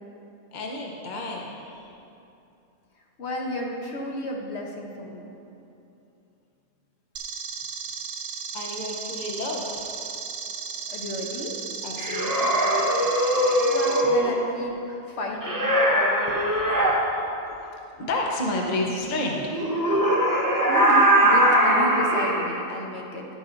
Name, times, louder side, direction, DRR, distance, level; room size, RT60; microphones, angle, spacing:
voice 1, 0.5-1.9 8.5-9.9 11.8-12.6 16.3-17.1 18.0-19.5 20.3-20.5, left 1 dB, 40° left, -1 dB, 0.8 m, -31 dB
voice 2, 3.2-5.3 10.9-11.6 13.7-15.7 20.7-23.3, left 1 dB, 55° left, 0 dB, 1.1 m, -32 dB
sound 1, 7.2-14.0, right 6 dB, 50° right, 0.7 m, -35 dB
sound 2, 12.0-14.4 15.4-16.9 19.5-22.4, right 1 dB, 15° right, 0.9 m, -21 dB
11.0 x 8.9 x 2.6 m, 2.7 s
omnidirectional pair, 1.4 m